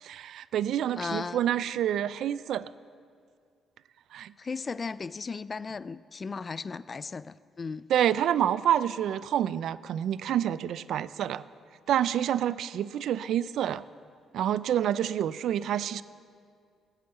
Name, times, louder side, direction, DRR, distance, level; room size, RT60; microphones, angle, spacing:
voice 1, 0.0-2.7 4.1-4.3 7.9-11.4 11.9-13.8 14.3-16.0, right 10 dB, 75° right, 17 dB, 0.4 m, -28 dB
voice 2, 1.0-1.4 4.4-7.9, left 4 dB, 35° left, 17 dB, 0.4 m, -36 dB
15.5 x 9.2 x 8.0 m, 2.2 s
cardioid pair, 90°, 0 cm